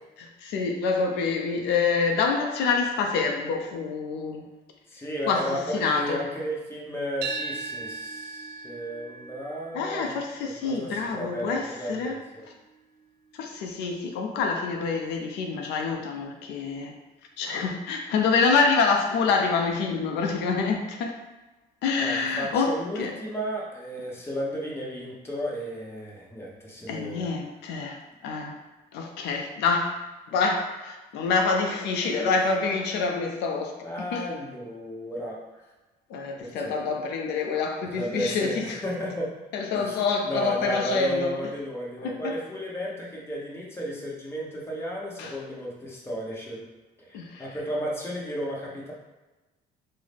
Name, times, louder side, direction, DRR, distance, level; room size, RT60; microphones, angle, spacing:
voice 1, 0.2-4.5 5.3-6.2 9.7-12.2 13.4-16.9 17.4-21.1 21.8-23.2 26.9-28.0 28.2-28.6 28.9-30.0 30.3-33.8 34.1-34.2 36.1-38.8 39.5-41.3 42.0-42.4 45.2-45.4 47.1-47.5, left 4 dB, 85° left, 2 dB, 0.4 m, -26 dB
voice 2, 4.9-10.1 10.4-12.5 22.0-27.3 32.0-32.3 33.8-35.4 36.4-36.8 37.9-39.3 39.7-40.0 40.2-46.6 47.0-48.9, equal, 15° left, -4 dB, 0.9 m, -33 dB
sound 1, 7.2-15.4, right 4 dB, 75° right, 0.4 m, -41 dB
3.8 x 2.0 x 3.3 m, 1.1 s
cardioid pair, 110°, 17 cm